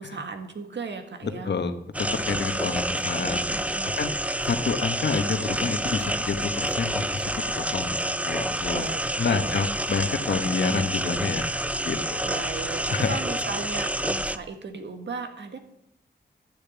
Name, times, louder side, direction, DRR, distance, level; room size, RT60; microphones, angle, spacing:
voice 1, 0.0-1.5 2.3-2.9 3.2-4.0 8.7-9.6 10.4-10.8 12.2-15.6, right 4 dB, 80° right, 6 dB, 1.8 m, -37 dB
voice 2, 1.4-3.6 4.0-4.1 4.4-8.9 9.2-11.5 11.8-12.2 12.9-13.2, left 4 dB, 70° left, 8 dB, 1.2 m, -28 dB
sound 1, 1.9-14.4, right 1 dB, 5° right, 0.6 m, -28 dB
12.0 x 7.0 x 9.8 m, 0.78 s
wide cardioid pair, 105°, 18 cm